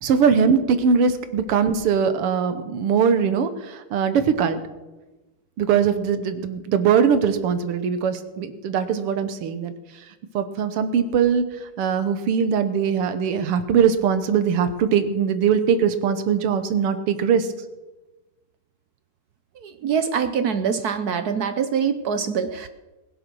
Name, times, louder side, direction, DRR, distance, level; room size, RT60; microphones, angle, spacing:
voice 1, 0.0-4.6 5.6-9.7 10.3-11.4 11.8-17.5, right 7 dB, 90° right, 10 dB, 2.1 m, -21 dB
voice 2, 19.6-22.7, right 7 dB, 65° right, 10 dB, 0.9 m, -24 dB
20.5 x 7.9 x 6.2 m, 1.1 s
omnidirectional pair, 2.4 m